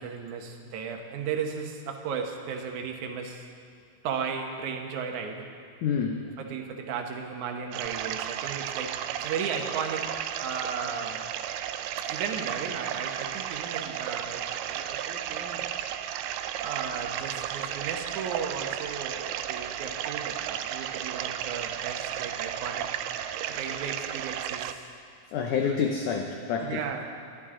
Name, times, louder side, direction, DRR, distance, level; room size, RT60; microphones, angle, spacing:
voice 1, 0.0-3.5 4.0-5.5 6.4-11.2 12.1-15.7 16.6-22.9 23.4-24.9 25.6-25.8 26.6-27.2, right 6 dB, 65° right, 3 dB, 2.1 m, -35 dB
voice 2, 5.8-6.3 25.3-26.8, left 6 dB, 75° left, 3 dB, 1.8 m, -28 dB
sound 1, 7.7-24.7, right 10 dB, 85° right, 2.4 m, -34 dB
21.5 x 12.0 x 3.7 m, 2.3 s
omnidirectional pair, 4.5 m